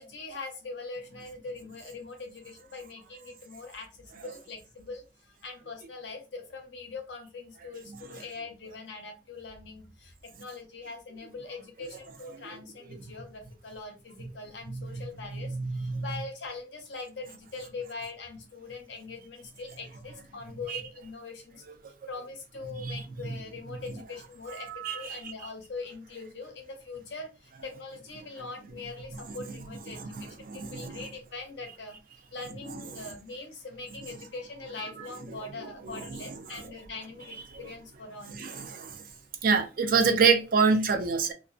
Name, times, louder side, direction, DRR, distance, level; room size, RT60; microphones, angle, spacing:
voice 1, 0.0-21.6 22.1-24.7 24.9-32.0 32.3-38.4, left 3 dB, 75° left, 0.7 m, -42 dB
voice 2, 14.7-15.0 15.3-15.4 15.8-16.0 20.7-20.8 21.7-21.8 22.8-23.4 24.6-25.3 29.3-29.4 29.9-31.1 32.7-33.1 35.3-36.6 37.3-37.7 38.3-39.0 39.4-41.3, right 5 dB, 50° right, 0.4 m, -28 dB
2.4 x 2.2 x 2.3 m
head